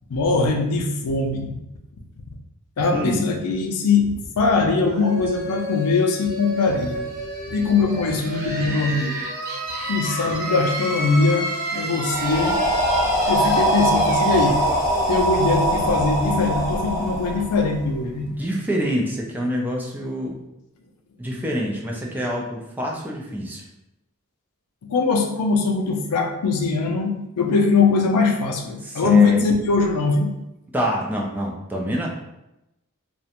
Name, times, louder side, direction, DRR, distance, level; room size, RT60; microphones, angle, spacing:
voice 1, 0.1-1.5 2.8-7.0 7.5-9.2 9.9-12.6 13.3-14.6 15.1-18.3 24.8-30.3, left 4 dB, 85° left, 4 dB, 0.4 m, -21 dB
sound 1, 4.8-16.4, right 1 dB, 45° right, 0.7 m, -30 dB
sound 2, 12.1-18.0, right 1 dB, 35° left, 0.8 m, -22 dB
voice 2, 18.2-20.3 21.2-23.6 28.8-29.4 30.7-32.1, equal, 10° right, -2 dB, 0.3 m, -26 dB
2.4 x 2.1 x 2.8 m, 0.89 s
head